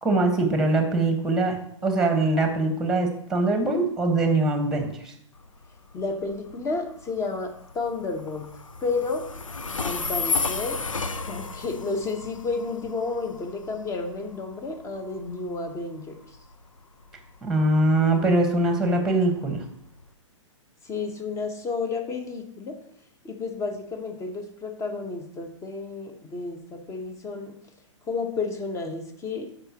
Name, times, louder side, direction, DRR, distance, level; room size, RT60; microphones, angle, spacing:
voice 1, 0.0-1.6 1.8-5.1 17.4-19.6, right 2 dB, 5° right, 5 dB, 1.3 m, -22 dB
Train, 5.3-20.1, left 4 dB, 85° left, 0.6 m, -34 dB
voice 2, 5.9-8.5 8.8-9.3 9.8-10.9 11.2-16.2 20.8-22.8 23.2-27.6 28.1-29.5, left 3 dB, 20° left, 6 dB, 1.1 m, -31 dB
12.5 x 5.2 x 2.9 m, 0.68 s
figure-of-eight pair, 115°, 16 cm